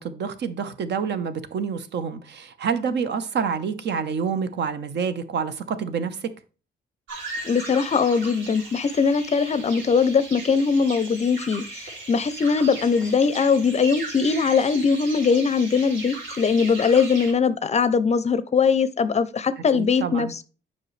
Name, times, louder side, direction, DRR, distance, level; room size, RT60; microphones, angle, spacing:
voice 1, 0.0-6.3 19.7-20.3, right 6 dB, 60° right, 0.8 m, -28 dB
sound 1, 7.1-17.3, right 2 dB, 75° right, 2.7 m, -37 dB
voice 2, 7.4-20.4, left 5 dB, 35° left, 0.5 m, -21 dB
7.5 x 5.3 x 3.2 m
cardioid pair, 90°, 20 cm